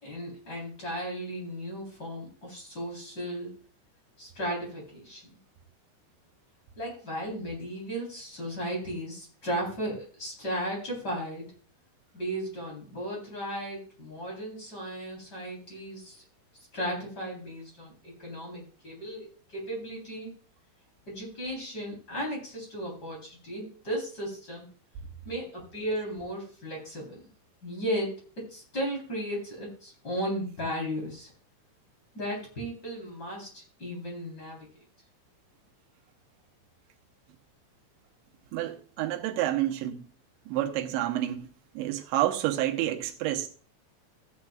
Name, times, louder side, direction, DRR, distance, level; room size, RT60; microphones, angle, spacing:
voice 1, 0.0-3.6 4.2-5.3 6.8-11.5 12.1-16.2 16.7-20.3 21.1-24.7 25.2-27.2 27.6-31.3 32.1-34.7, equal, 25° left, 3.8 m, -35 dB
voice 2, 38.5-40.1 40.5-41.5 41.7-43.5, right 13 dB, 80° right, 3.2 m, -29 dB
14.5 x 9.3 x 2.4 m
omnidirectional pair, 5.3 m